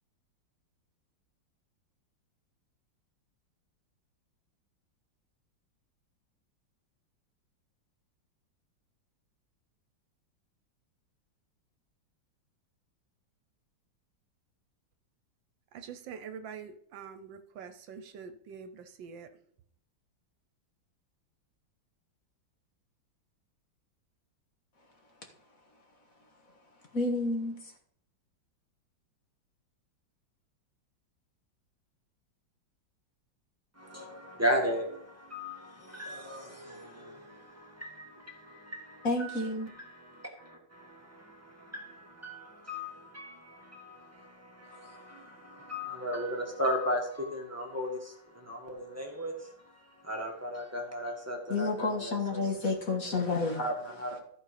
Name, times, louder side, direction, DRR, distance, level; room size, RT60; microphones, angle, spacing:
voice 1, 15.7-19.3, right 7 dB, 75° right, 1.5 m, -45 dB
voice 2, 26.9-27.7 39.0-39.7 51.5-54.2, left 3 dB, 45° left, 1.9 m, -30 dB
voice 3, 33.8-54.2, equal, 10° right, 1.8 m, -37 dB
14.0 x 5.4 x 5.0 m
omnidirectional pair, 2.1 m